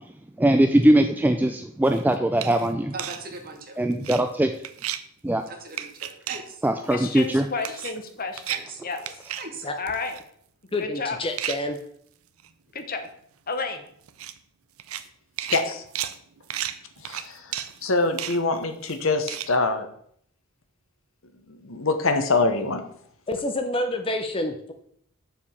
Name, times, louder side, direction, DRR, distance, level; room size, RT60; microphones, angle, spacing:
voice 1, 0.4-2.9 3.8-4.5 5.2-5.4 6.6-7.5, right 1 dB, 10° right, 6 dB, 0.3 m, -21 dB
sound 1, 1.8-2.0 2.4-2.7 3.0-3.2 3.9-4.2 4.6-5.0 5.7-6.4 6.9-7.3 7.6-8.1 8.3-8.6 8.9-9.5 9.9-10.2 11.4-11.8 12.4-12.5 12.8-12.9 13.0-13.1 14.1-14.4 14.8-15.1 15.4-19.5, right 11 dB, 75° right, 0.6 m, -33 dB
voice 2, 2.9-3.8 5.5-6.6 7.5-7.7 8.5-8.8 9.4-9.7, right 3 dB, 45° right, 4 dB, 1.6 m, -39 dB
voice 3, 6.9-9.2 9.8-10.2 10.8-11.2 12.7-13.1 13.5-13.8, left 4 dB, 45° left, 6 dB, 1.1 m, -31 dB
voice 4, 10.7-11.8 23.3-24.7, left 1 dB, 25° left, 6 dB, 0.6 m, -28 dB
voice 5, 15.5-15.8 17.0-19.9 21.5-22.8, left 3 dB, 65° left, 8 dB, 1.0 m, -24 dB
7.0 x 4.9 x 7.1 m, 0.65 s
head